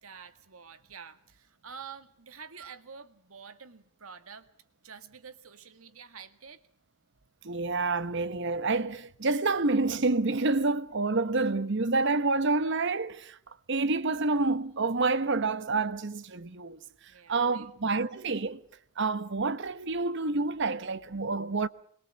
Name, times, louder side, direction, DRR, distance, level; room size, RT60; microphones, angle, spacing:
voice 1, 0.0-4.5 4.8-6.6 17.1-17.7, right 6 dB, 85° right, 1.8 m, -48 dB
voice 2, 7.4-13.4 13.7-16.8 17.3-18.6 19.0-21.7, right 3 dB, 55° right, 1.0 m, -28 dB
25.5 x 21.5 x 7.0 m
head